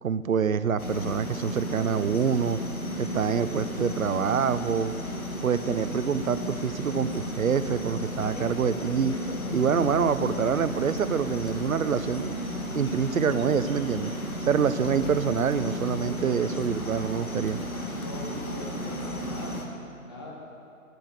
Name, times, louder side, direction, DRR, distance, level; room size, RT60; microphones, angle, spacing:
voice 1, 0.0-2.6 3.0-4.9 5.4-9.1 9.5-12.3 12.8-14.1 14.5-17.6, right 7 dB, 75° right, 13 dB, 0.6 m, -26 dB
sound 1, 0.8-19.6, equal, 85° left, 1.8 m, -34 dB
sound 2, 7.3-7.4 7.9-9.9 10.6-11.6 12.3-13.7 14.0-14.1 14.8-16.7 17.3-18.1, left 2 dB, 65° left, 1.3 m, -44 dB
voice 2, 17.9-19.5 20.0-20.3, left 1 dB, 15° left, -3 dB, 1.0 m, -40 dB
9.2 x 8.6 x 6.6 m, 2.6 s
figure-of-eight pair, 155°, 42 cm